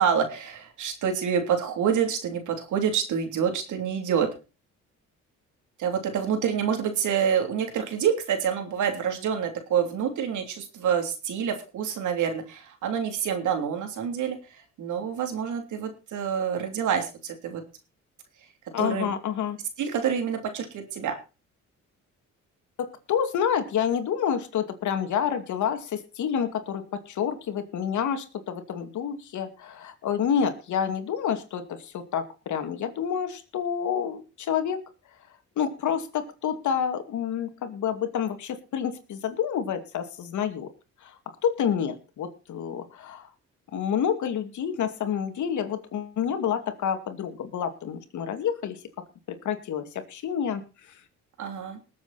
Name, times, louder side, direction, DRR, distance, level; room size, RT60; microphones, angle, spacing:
voice 1, 0.0-4.3 5.8-17.6 18.8-19.1 19.8-21.1 51.4-51.8, right 7 dB, 75° right, 5 dB, 3.3 m, -27 dB
voice 2, 18.7-19.6 22.8-34.8 35.6-40.7 41.0-41.2 41.4-43.3 43.7-48.8 49.3-50.6 50.9-51.0, left 8 dB, 75° left, 7 dB, 2.5 m, -28 dB
20.0 x 7.7 x 4.3 m, 0.31 s
cardioid pair, 90°, 30 cm